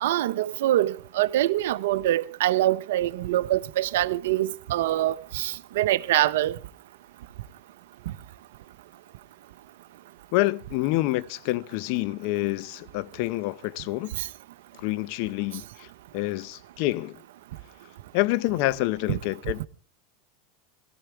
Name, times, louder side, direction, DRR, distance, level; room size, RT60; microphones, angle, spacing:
voice 1, 0.0-6.6 19.1-19.2, right 14 dB, 80° right, 0.6 m, -24 dB
voice 2, 10.3-14.1 14.8-15.9 16.1-17.2 18.1-19.7, left 18 dB, 65° left, 0.6 m, -27 dB
20.0 x 13.5 x 3.4 m
hypercardioid pair, 100°, 0 cm